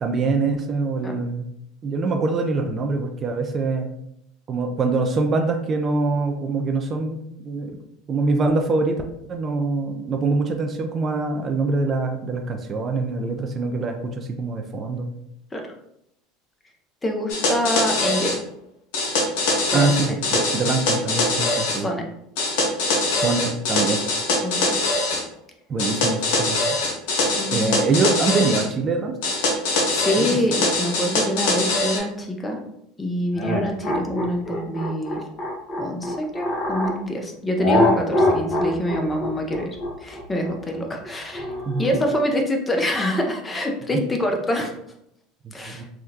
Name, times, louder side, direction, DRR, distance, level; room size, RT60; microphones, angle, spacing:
voice 1, 0.0-1.5 1.8-3.9 4.5-7.8 8.1-9.0 9.3-15.1 19.7-21.9 23.1-24.0 25.7-26.6 27.5-29.2 30.2-30.4 41.7-41.8 43.9-44.0 45.4-45.9, right 3 dB, 35° right, 4 dB, 0.4 m, -24 dB
voice 2, 17.0-18.4 19.7-20.2 21.7-22.0 24.4-24.8 27.4-27.8 29.9-32.6 33.0-35.2 35.8-41.5 41.8-44.7 45.5-45.8, equal, 20° left, 3 dB, 0.7 m, -26 dB
sound 1, 17.3-18.4 18.9-21.8 22.4-25.2 25.8-28.7 29.2-32.0, left 2 dB, 70° left, 0.7 m, -23 dB
sound 2, 33.3-37.0 37.6-42.1, left 1 dB, 40° left, 1.0 m, -24 dB
3.5 x 2.3 x 2.8 m, 0.77 s
hypercardioid pair, 85°, 0 cm